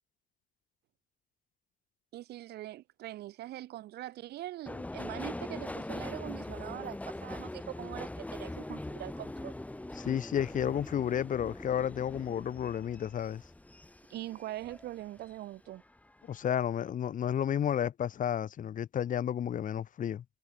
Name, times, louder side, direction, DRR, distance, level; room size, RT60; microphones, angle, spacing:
voice 1, 2.1-9.5 14.1-15.8, right 15 dB, 75° right, 4.9 m, -42 dB
Subway metro underground, 4.7-15.4 15.7-16.5 16.7-16.9, left 1 dB, 10° left, 5.6 m, -42 dB
voice 2, 10.0-13.4 16.3-20.2, left 9 dB, 50° left, 3.6 m, -32 dB
cardioid pair, 110°, 17 cm